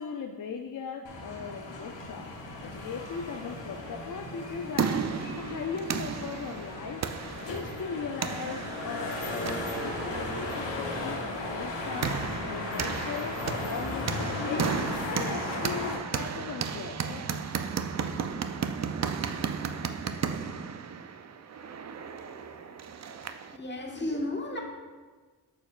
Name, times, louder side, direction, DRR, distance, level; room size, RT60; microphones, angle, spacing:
voice 1, 0.0-2.3 2.6-5.0 5.4-7.0 7.5-12.2 12.5-14.8 15.1-17.5, left 5 dB, 50° left, 4 dB, 0.5 m, -38 dB
sound 1, 1.0-16.0, left 2 dB, 80° left, 1.0 m, -36 dB
sound 2, 4.3-23.6, right 6 dB, 40° right, 0.4 m, -34 dB
voice 2, 23.5-24.6, left 1 dB, 25° left, -1 dB, 1.4 m, -33 dB
8.5 x 5.1 x 2.4 m, 1.4 s
cardioid pair, 50°, 43 cm